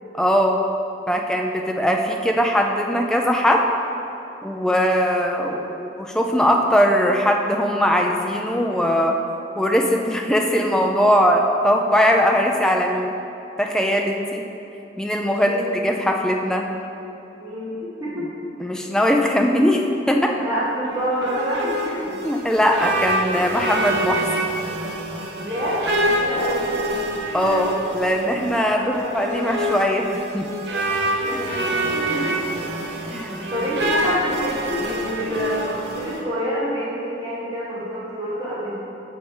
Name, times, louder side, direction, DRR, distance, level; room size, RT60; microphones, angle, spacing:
voice 1, 0.1-0.6 1.1-3.7 4.4-9.2 9.6-13.1 13.6-14.5 15.0-16.7 18.6-20.4 22.2-24.2 27.3-30.5 31.3-31.4 33.1-33.4, equal, 5° left, 1 dB, 0.5 m, -20 dB
voice 2, 15.4-15.7 17.4-18.3 20.4-22.2 25.4-26.9 28.7-29.0 29.3-29.8 31.2-31.6 31.9-32.4 32.9-38.8, equal, 20° right, -9 dB, 1.6 m, -27 dB
sound 1, 20.9-36.2, right 1 dB, 75° right, 0.8 m, -26 dB
6.8 x 6.2 x 4.8 m, 2.8 s
head